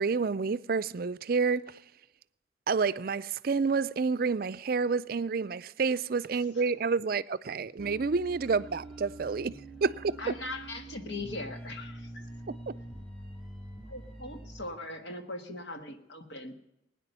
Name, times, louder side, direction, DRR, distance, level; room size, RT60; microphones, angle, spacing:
voice 1, 0.0-1.7 2.7-10.2 12.5-12.8, right 4 dB, 50° right, 0.4 m, -29 dB
sound 1, 7.8-14.6, right 1 dB, 5° left, 2.3 m, -45 dB
voice 2, 10.2-12.3 13.9-16.6, left 2 dB, 65° left, 1.6 m, -40 dB
18.5 x 9.9 x 6.8 m
head